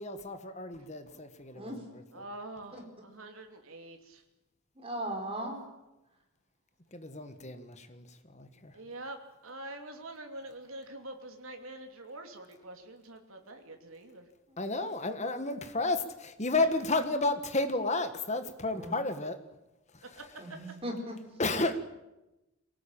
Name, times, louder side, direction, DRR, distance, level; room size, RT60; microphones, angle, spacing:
voice 1, 0.0-2.2 6.9-8.7 14.6-19.4 21.4-21.8, left 2 dB, 30° left, 9 dB, 1.6 m, -32 dB
voice 2, 2.1-4.2 8.7-9.2 9.4-14.3 20.1-20.2 21.6-21.7, right 1 dB, 70° right, 4 dB, 2.8 m, -45 dB
voice 3, 4.8-5.6 18.7-18.9 20.4-21.2, right 1 dB, 25° right, 2 dB, 4.5 m, -37 dB
23.0 x 18.0 x 9.0 m, 1.0 s
head